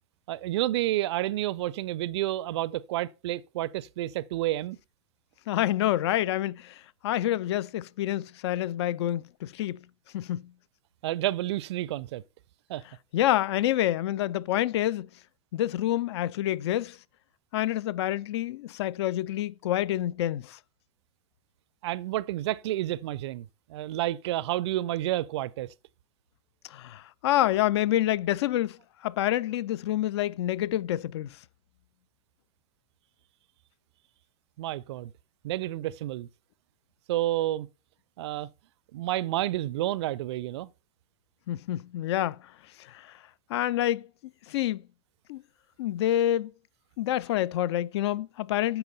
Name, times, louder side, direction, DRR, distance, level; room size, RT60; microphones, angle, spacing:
voice 1, 0.3-4.8 11.0-12.2 12.7-12.8 21.8-25.7 34.6-35.1 35.4-36.3 37.1-37.7 38.2-38.5 38.9-40.7, right 15 dB, 50° right, 0.5 m, -30 dB
voice 2, 5.5-9.8 10.1-10.5 13.1-15.1 15.5-17.0 17.5-20.6 26.7-31.4 41.5-42.4 42.8-43.1 43.5-44.1 44.5-44.8 45.3-45.4 45.8-46.5 47.0-48.8, left 13 dB, 50° left, 0.4 m, -27 dB
8.8 x 5.9 x 5.3 m
figure-of-eight pair, 95°, 18 cm